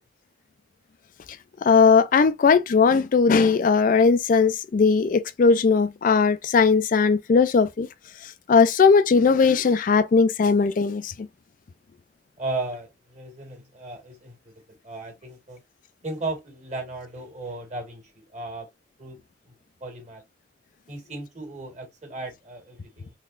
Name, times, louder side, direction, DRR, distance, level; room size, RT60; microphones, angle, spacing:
voice 1, 1.6-7.9 8.2-11.3, left 5 dB, 45° left, 0.3 m, -19 dB
voice 2, 12.4-14.5 14.8-15.6 16.0-18.7 19.0-19.2 19.4-19.5 19.8-20.2 20.9-23.1, right 2 dB, 35° right, 1.6 m, -35 dB
3.9 x 3.0 x 2.4 m
head